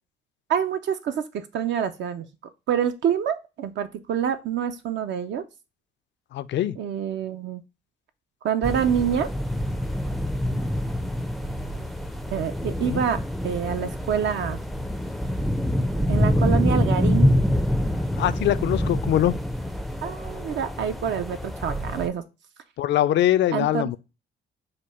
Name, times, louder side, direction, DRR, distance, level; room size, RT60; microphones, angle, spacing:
voice 1, 0.5-2.3 2.7-5.4 6.8-7.6 8.4-9.3 12.3-14.6 16.1-17.3 20.0-22.2 23.5-24.0, right 8 dB, 65° right, 0.5 m, -26 dB
voice 2, 6.3-6.8 12.8-13.0 18.2-19.3 22.8-24.0, left 12 dB, 65° left, 0.4 m, -22 dB
sound 1, 8.6-22.1, left 1 dB, ahead, 0.4 m, -26 dB
5.1 x 2.2 x 4.1 m
cardioid pair, 90°, 20 cm